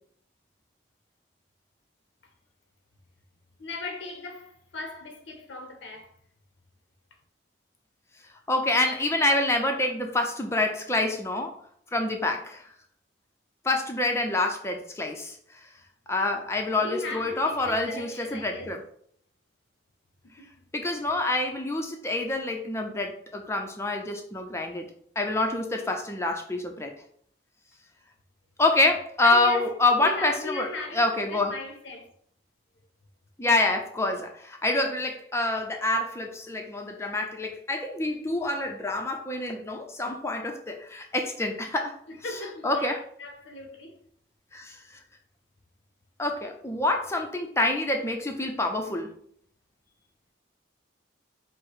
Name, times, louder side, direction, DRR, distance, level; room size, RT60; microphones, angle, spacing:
voice 1, 3.6-6.1 16.8-18.7 20.4-20.5 20.9-21.0 29.2-29.7 30.0-32.1 42.1-44.0, left 2 dB, 70° left, 0.6 m, -38 dB
voice 2, 8.5-11.5 11.9-12.6 13.6-15.4 16.1-18.8 20.7-24.9 25.2-26.9 28.6-30.7 30.9-31.5 33.4-41.9 42.6-43.0 44.5-44.8 46.2-49.1, left 2 dB, 15° left, 0.5 m, -27 dB
4.7 x 2.0 x 4.6 m
head